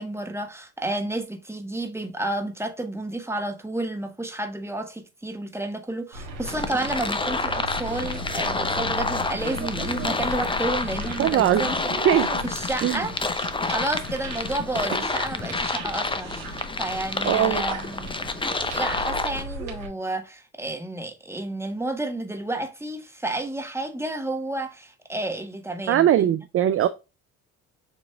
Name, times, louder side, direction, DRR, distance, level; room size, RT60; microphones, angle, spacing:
voice 1, 0.0-11.8 12.4-13.2 13.6-18.1 18.7-26.3, right 2 dB, 5° right, 1.3 m, -31 dB
sound 1, 6.1-19.9, right 1 dB, 85° right, 1.4 m, -37 dB
sound 2, 6.5-19.4, left 3 dB, 10° left, 0.6 m, -29 dB
sound 3, 7.8-15.9, left 7 dB, 40° left, 1.0 m, -40 dB
voice 2, 11.2-11.7 12.0-12.3 12.8-13.0 17.3-17.6 25.9-26.9, right 11 dB, 35° right, 0.4 m, -20 dB
7.2 x 3.0 x 2.4 m
hypercardioid pair, 60°, 41 cm